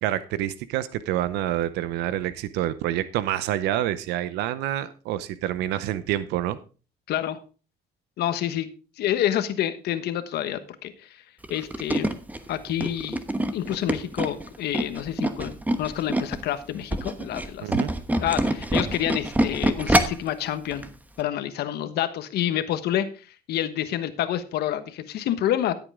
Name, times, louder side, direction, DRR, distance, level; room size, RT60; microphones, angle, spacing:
voice 1, 0.0-6.6 17.6-17.9, right 12 dB, 90° right, 0.7 m, -27 dB
voice 2, 7.1-7.4 8.2-8.7 9.0-11.2 11.5-12.1 12.5-13.2 13.5-15.5 15.8-17.8 18.2-20.8 21.2-25.7, left 11 dB, 75° left, 1.2 m, -28 dB
Tools, 11.4-16.4 16.8-20.3 20.7-20.9 21.2-21.3, right 1 dB, 10° right, 1.1 m, -25 dB
13.5 x 8.2 x 3.7 m
cardioid pair, 110°, 17 cm